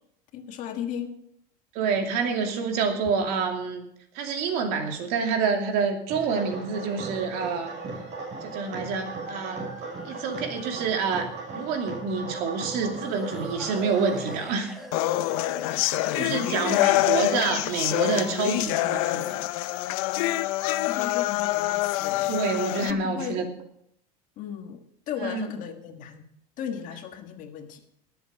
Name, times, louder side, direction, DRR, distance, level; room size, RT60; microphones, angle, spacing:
voice 1, 0.3-1.1 16.3-17.0 17.6-17.8 20.8-22.4 22.8-23.4 24.4-26.3 26.6-27.8, left 8 dB, 45° left, 6 dB, 1.6 m, -36 dB
voice 2, 1.7-3.8 4.1-7.7 8.4-9.6 10.0-14.7 16.1-19.4 22.3-23.5 25.2-25.5, right 5 dB, 55° right, 4 dB, 2.6 m, -27 dB
sound 1, 6.1-14.4, right 3 dB, 40° right, 6.5 m, -37 dB
sound 2, 9.7-11.4 12.9-19.5, left 1 dB, ahead, 1.6 m, -43 dB
sound 3, 14.9-22.9, left 16 dB, 70° left, 0.7 m, -26 dB
19.5 x 8.2 x 5.2 m, 0.73 s
supercardioid pair, 145°, 19 cm